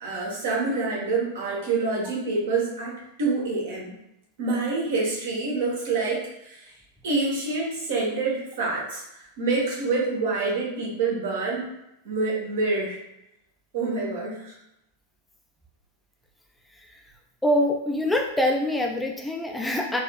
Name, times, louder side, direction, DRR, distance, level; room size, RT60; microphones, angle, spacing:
voice 1, 0.0-2.9 3.2-3.9 4.4-6.6 7.0-9.0 9.4-11.7 12.0-13.0 13.7-14.5, right 3 dB, 55° right, -3 dB, 1.1 m, -26 dB
voice 2, 17.4-20.0, left 1 dB, 5° left, 1 dB, 0.4 m, -24 dB
4.1 x 2.4 x 2.2 m, 0.86 s
figure-of-eight pair, 90°, 0 cm